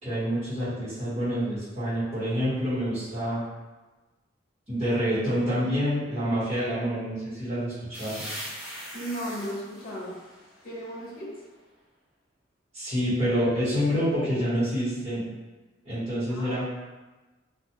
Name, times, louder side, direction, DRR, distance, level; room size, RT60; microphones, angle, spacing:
voice 1, 0.0-3.4 4.7-8.2 12.7-15.2 15.8-16.7, equal, 35° right, -13 dB, 1.3 m, -27 dB
sound 1, 7.9-11.5, equal, 10° right, 0.8 m, -41 dB
voice 2, 8.9-10.2 10.6-11.3 16.3-16.7, equal, 50° left, -5 dB, 0.7 m, -35 dB
2.4 x 2.4 x 2.8 m, 1.2 s
head